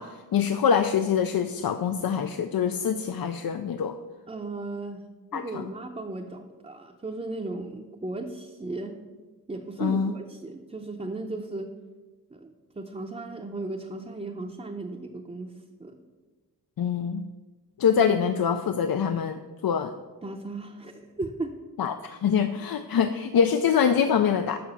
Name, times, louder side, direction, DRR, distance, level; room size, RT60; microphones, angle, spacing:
voice 1, 0.0-4.0 5.3-5.7 9.8-10.1 16.8-17.3 17.8-19.9 21.8-24.6, left 7 dB, 75° left, 9 dB, 0.5 m, -25 dB
voice 2, 4.3-5.1 5.3-9.0 9.5-11.7 12.3-16.0 20.2-21.5, right 2 dB, 20° right, 1 dB, 0.6 m, -36 dB
6.9 x 6.0 x 6.8 m, 1.3 s
wide cardioid pair, 85°, 36 cm